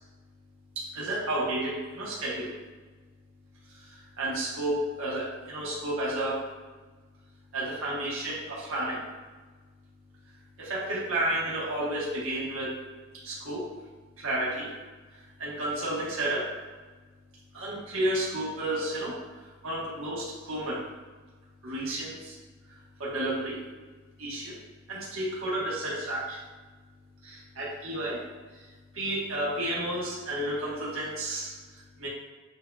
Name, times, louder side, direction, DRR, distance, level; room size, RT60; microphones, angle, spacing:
voice 1, 0.7-2.5 3.7-6.5 7.5-9.1 10.6-12.8 13.1-13.7 14.2-14.7 15.1-16.5 17.5-20.9 21.6-22.4 22.7-23.6 24.2-24.6 24.9-26.4 27.2-28.2 28.5-32.1, right 1 dB, 85° right, -6 dB, 1.3 m, -32 dB
7.6 x 2.6 x 2.3 m, 1.3 s
head